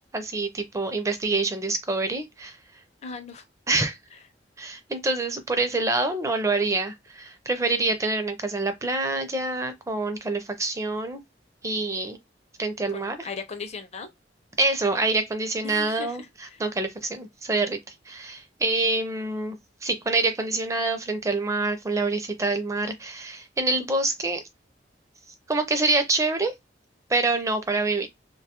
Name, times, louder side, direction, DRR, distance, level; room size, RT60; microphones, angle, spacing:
voice 1, 0.1-2.6 3.7-4.0 4.6-11.2 11.6-12.2 12.6-13.3 14.6-16.2 16.6-17.8 18.1-19.6 19.8-24.4 25.5-26.5 27.1-28.1, right 3 dB, 20° right, 0.4 m, -26 dB
voice 2, 3.0-3.4 12.9-14.1 15.6-16.6, left 4 dB, 40° left, 0.5 m, -38 dB
2.3 x 2.2 x 2.8 m
head